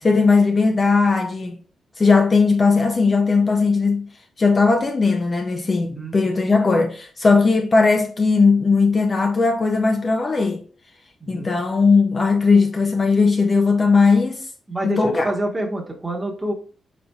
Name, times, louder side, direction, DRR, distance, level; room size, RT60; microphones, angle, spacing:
voice 1, 0.0-1.6 2.0-4.0 4.4-10.6 11.3-14.4 14.8-15.3, left 4 dB, 30° left, 0.5 m, -18 dB
voice 2, 14.7-16.5, right 1 dB, 15° right, 1.1 m, -27 dB
4.2 x 4.1 x 2.3 m
wide cardioid pair, 125°, 0 cm